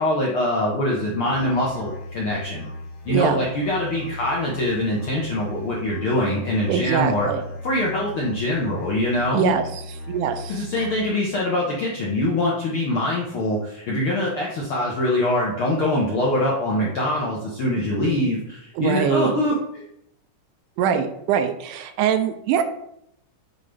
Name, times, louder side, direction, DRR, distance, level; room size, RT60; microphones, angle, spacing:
voice 1, 0.0-2.7 3.0-7.3 7.6-9.5 10.5-19.8, left 1 dB, 70° left, -4 dB, 1.2 m, -23 dB
Musical instrument, 1.3-11.3, left 1 dB, 55° left, 1.8 m, -37 dB
voice 2, 3.1-3.4 6.7-7.4 9.3-9.8 10.1-10.9 18.8-19.4 20.8-22.6, right 8 dB, 85° right, 8 dB, 2.1 m, -23 dB
7.4 x 3.8 x 3.4 m, 0.75 s
omnidirectional pair, 3.7 m